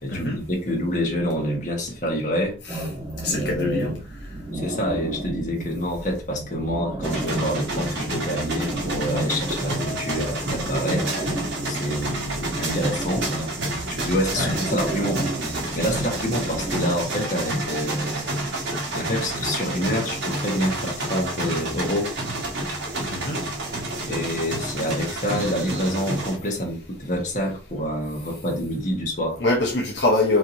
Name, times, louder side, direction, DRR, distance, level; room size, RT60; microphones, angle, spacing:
voice 1, 0.0-2.6 3.3-4.0 4.5-13.3 14.0-15.2 15.7-18.3 18.9-22.1 24.1-29.4, equal, 45° left, 1.4 m, -27 dB
sound 1, 2.7-16.9, right 1 dB, 25° right, 1.1 m, -33 dB
voice 2, 3.2-3.9 14.3-14.6 23.1-23.4 29.4-30.4, left 2 dB, 70° left, 0.9 m, -23 dB
sound 2, 7.0-26.4, right 1 dB, 85° right, 1.5 m, -29 dB
5.0 x 2.9 x 2.6 m
head